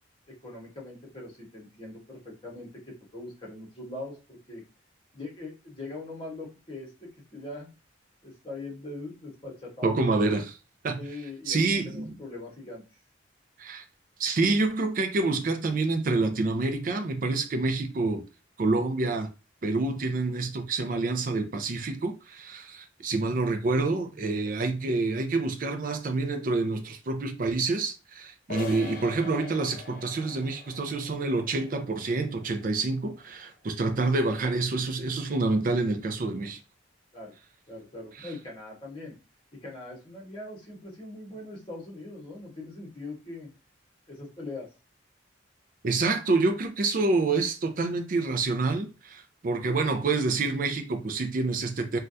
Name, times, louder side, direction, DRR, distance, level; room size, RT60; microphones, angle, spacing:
voice 1, 0.3-2.7 3.1-4.6 5.1-7.7 8.2-10.0 10.9-12.8 37.1-37.3 37.7-39.2 39.6-43.5 44.1-44.7, left 2 dB, 25° left, 1.1 m, -41 dB
voice 2, 9.8-10.6 10.8-11.0 11.5-12.2 13.6-13.8 14.2-18.2 18.6-19.3 19.6-36.6 45.8-52.0, right 3 dB, 45° right, 0.4 m, -27 dB
sound 1, 28.5-34.0, left 3 dB, 45° left, 0.6 m, -44 dB
3.3 x 2.3 x 2.6 m
head